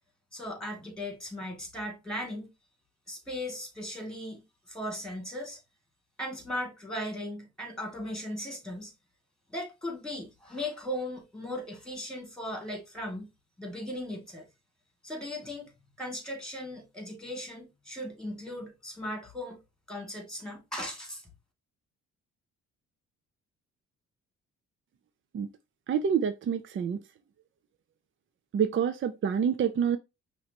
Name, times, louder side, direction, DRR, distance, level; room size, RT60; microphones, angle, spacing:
voice 1, 0.3-2.5 3.1-4.4 4.7-5.6 6.2-8.9 9.5-13.3 13.6-14.5 15.0-15.7 16.0-19.6 19.9-21.2, left 1 dB, ahead, 2.4 m, -37 dB
voice 2, 25.9-27.0 28.5-30.0, right 7 dB, 40° right, 0.5 m, -27 dB
5.5 x 3.0 x 2.9 m
cardioid pair, 90°, 30 cm